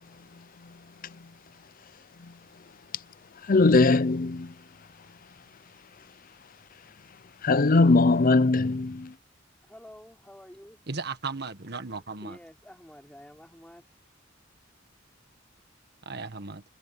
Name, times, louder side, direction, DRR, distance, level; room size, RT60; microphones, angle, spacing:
voice 1, 3.4-4.5 7.4-9.1, left 3 dB, 45° left, 0.6 m, -21 dB
voice 2, 9.6-10.8 12.2-14.0, equal, 5° left, 4.6 m, -49 dB
voice 3, 10.9-12.4 16.0-16.6, right 4 dB, 55° right, 1.6 m, -36 dB
head